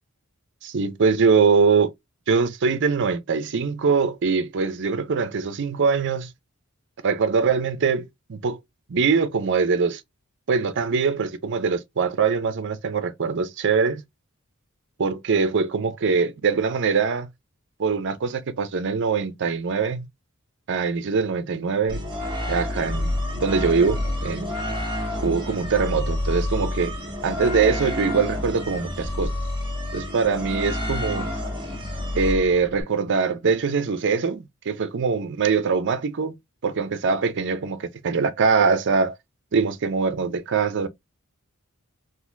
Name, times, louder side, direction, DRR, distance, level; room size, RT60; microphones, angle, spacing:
voice 1, 0.6-1.9 2.3-6.3 7.0-8.6 8.9-10.0 10.5-14.0 15.0-17.3 17.8-20.1 20.7-22.0 22.5-24.5 25.2-27.0 27.2-29.3 29.9-31.3 32.1-36.3 36.6-39.2 39.5-40.9, right 5 dB, 55° right, 0.5 m, -23 dB
sound 1, 21.9-32.8, left 1 dB, 20° right, 1.2 m, -28 dB
3.9 x 2.5 x 2.5 m
head